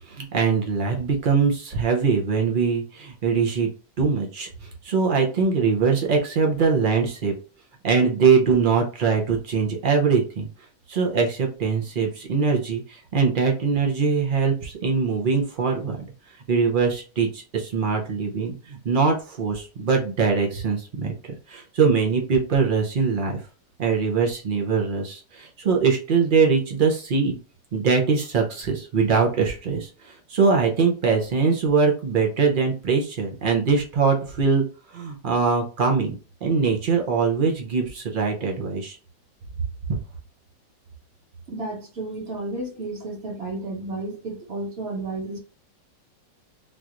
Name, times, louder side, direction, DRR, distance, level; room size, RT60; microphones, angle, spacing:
voice 1, 0.1-3.7 4.0-4.5 4.8-7.3 7.8-10.5 10.9-16.0 16.5-23.4 23.8-27.4 27.7-34.6 34.9-36.1 36.4-39.0, right 5 dB, 85° right, 0.4 m, -22 dB
voice 2, 41.5-45.4, right 2 dB, 45° right, 1.0 m, -32 dB
3.9 x 2.5 x 2.9 m
omnidirectional pair, 1.9 m